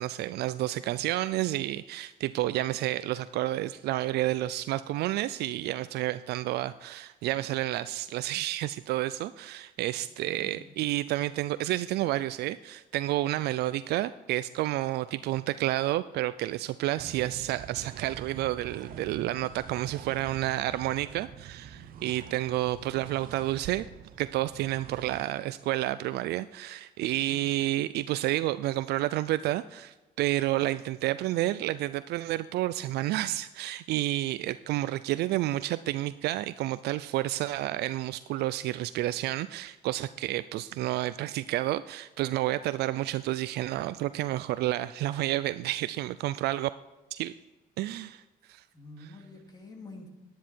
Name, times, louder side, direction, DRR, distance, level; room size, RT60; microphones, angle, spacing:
voice 1, 0.0-23.9 24.2-46.7 47.1-47.3 47.8-48.2 48.5-48.6 49.0-49.1, right 15 dB, 75° right, 14 dB, 0.4 m, -30 dB
voice 2, 10.2-10.7 18.8-19.3 21.7-22.3 27.2-27.5 48.7-50.1, left 1 dB, 25° left, 2 dB, 2.6 m, -48 dB
sound 1, 17.0-25.3, right 9 dB, 60° right, 0.8 m, -45 dB
10.5 x 10.0 x 4.5 m, 1.1 s
cardioid pair, 110°, 17 cm